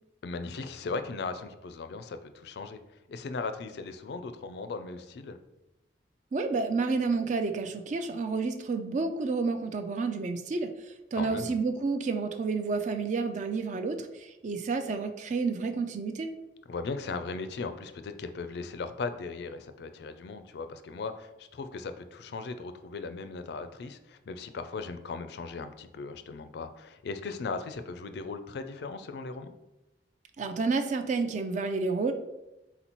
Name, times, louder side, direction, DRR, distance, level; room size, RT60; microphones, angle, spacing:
voice 1, 0.2-2.8 3.1-5.4 11.1-11.5 16.7-29.5, left 4 dB, 65° left, 9 dB, 0.4 m, -38 dB
voice 2, 6.3-10.7 11.1-16.3 30.4-32.1, right 4 dB, 40° right, 7 dB, 0.3 m, -30 dB
4.1 x 3.9 x 2.9 m, 0.97 s
head